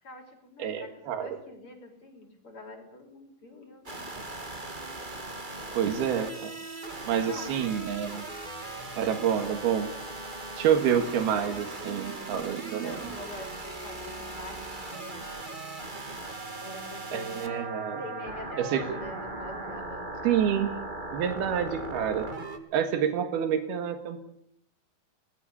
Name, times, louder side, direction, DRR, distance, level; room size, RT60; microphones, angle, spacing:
voice 1, 0.0-0.9 1.2-4.0 7.1-7.7 10.9-11.3 12.4-15.3 16.6-20.2, left 1 dB, 35° left, 3 dB, 5.7 m, -45 dB
voice 2, 0.6-1.3 5.8-6.5 7.1-8.2 9.0-9.9 10.6-13.2 17.1-18.0 18.6-18.8 20.2-20.7 21.1-22.3 22.7-24.2, right 8 dB, 90° right, 8 dB, 3.7 m, -28 dB
sound 1, 3.8-22.6, right 2 dB, 20° right, 1.6 m, -39 dB
29.5 x 20.5 x 6.9 m, 0.69 s
omnidirectional pair, 4.3 m